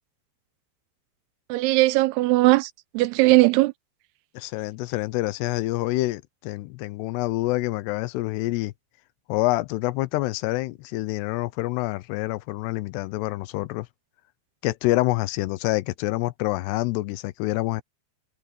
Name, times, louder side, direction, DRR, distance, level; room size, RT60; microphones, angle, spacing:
voice 1, 1.5-3.7, right 20 dB, 80° right, 2.5 m, -19 dB
voice 2, 4.3-8.7 9.3-13.9 14.6-17.8, left 19 dB, 85° left, 2.8 m, -27 dB
omnidirectional pair, 4.8 m